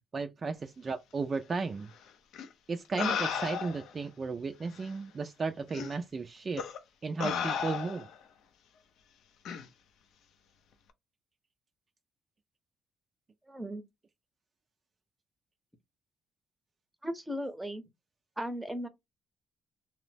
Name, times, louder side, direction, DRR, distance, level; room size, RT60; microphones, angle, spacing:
voice 1, 0.1-1.9 2.7-6.6 7.0-8.1, right 4 dB, 35° right, 0.3 m, -34 dB
sound 1, 2.3-2.5 3.0-3.9 4.8-4.9 5.7-5.9 6.6-6.8 7.2-8.2 9.5-9.7, left 7 dB, 80° left, 0.5 m, -34 dB
voice 2, 13.5-13.8 17.0-17.8 18.4-18.9, equal, 5° right, 0.7 m, -36 dB
2.8 x 2.0 x 3.2 m
cardioid pair, 90°, 0 cm